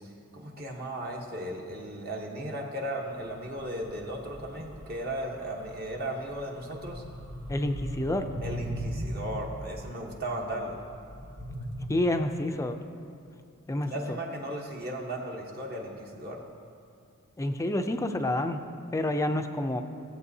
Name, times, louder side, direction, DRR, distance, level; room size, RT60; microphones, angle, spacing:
voice 1, 0.3-7.0 8.4-10.8 13.8-16.4, right 1 dB, 45° right, -1 dB, 1.0 m, -36 dB
sound 1, 3.1-11.8, equal, 75° right, 1.5 m, -40 dB
voice 2, 7.5-8.3 11.9-12.8 13.7-14.2 17.4-18.6 18.9-19.8, left 1 dB, 15° left, 6 dB, 0.4 m, -28 dB
16.0 x 7.8 x 2.7 m, 2.4 s
head